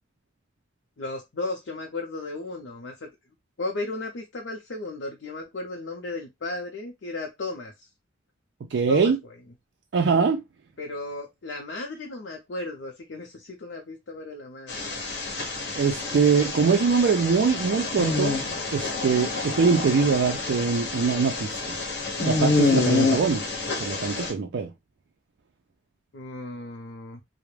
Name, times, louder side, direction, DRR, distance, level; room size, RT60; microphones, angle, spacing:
voice 1, 1.0-3.1 3.6-7.9 8.9-9.3 10.8-14.9 26.1-27.2, left 2 dB, 85° left, 0.6 m, -35 dB
voice 2, 8.7-9.2 9.9-10.4 15.8-18.4 18.7-21.8 22.2-23.5 23.8-24.7, right 5 dB, 75° right, 0.4 m, -23 dB
sound 1, 14.7-24.3, left 3 dB, 65° left, 0.9 m, -27 dB
2.3 x 2.1 x 3.1 m
head